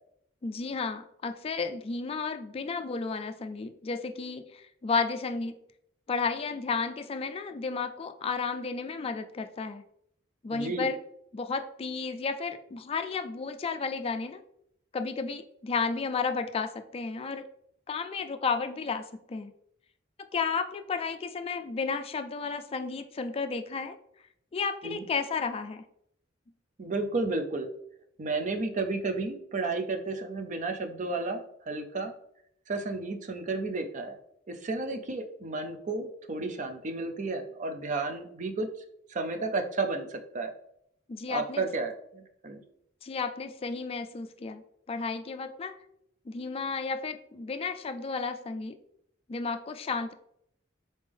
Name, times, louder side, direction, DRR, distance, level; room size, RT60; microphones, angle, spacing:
voice 1, 0.4-5.6 6.1-9.8 10.4-11.0 11.3-14.4 14.9-17.4 17.9-19.0 19.3-19.5 20.3-24.0 24.5-25.8 41.1-41.6 43.0-44.6 44.9-45.7 46.3-48.8 49.3-50.1, left 4 dB, 30° left, 8 dB, 0.3 m, -32 dB
voice 2, 10.5-10.9 24.8-25.0 26.8-27.7 28.2-32.1 32.7-34.2 34.5-38.7 39.1-40.5 41.3-42.6, right 3 dB, 40° right, 7 dB, 0.5 m, -32 dB
4.0 x 3.6 x 3.4 m, 0.73 s
head